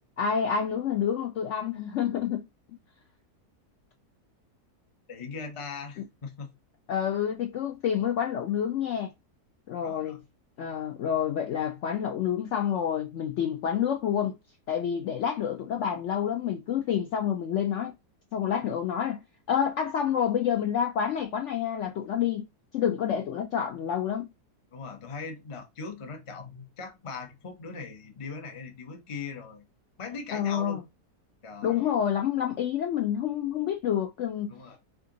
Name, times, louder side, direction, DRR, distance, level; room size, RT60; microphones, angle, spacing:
voice 1, 0.2-2.4 6.9-9.1 9.7-10.2 10.6-14.4 14.7-17.9 18.3-19.2 19.5-22.4 22.7-24.3 30.3-30.8 31.6-34.6, left 8 dB, 65° left, 0.7 m, -28 dB
voice 2, 5.1-6.5 9.8-10.2 24.7-29.6 30.0-30.8 31.4-31.9 34.5-34.8, left 4 dB, 35° left, 0.5 m, -40 dB
3.5 x 2.5 x 3.7 m
omnidirectional pair, 1.7 m